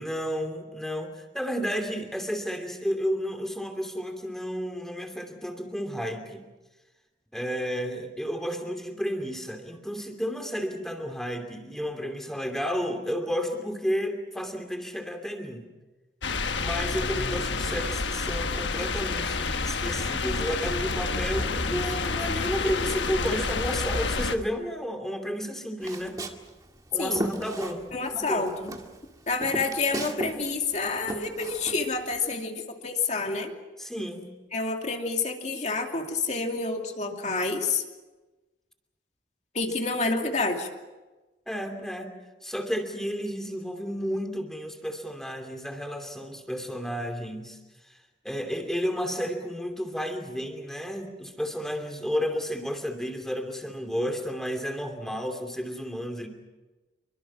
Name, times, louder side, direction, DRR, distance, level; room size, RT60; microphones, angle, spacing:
voice 1, 0.0-6.4 7.3-15.7 16.5-26.2 26.9-27.9 28.1-28.5 33.8-34.3 41.5-42.1 42.4-47.6 47.9-48.0 48.2-56.3, equal, 5° left, 5 dB, 2.8 m, -32 dB
sound 1, 16.2-24.4, left 4 dB, 75° left, 1.3 m, -29 dB
Walk footsteps, 25.8-28.2 28.5-30.4 30.6-32.2, right 1 dB, 20° right, 2.0 m, -35 dB
voice 2, 27.9-28.7 29.3-33.5 34.5-37.8 39.5-40.7, left 3 dB, 35° left, 3 dB, 2.6 m, -28 dB
27.0 x 24.0 x 6.2 m, 1.2 s
head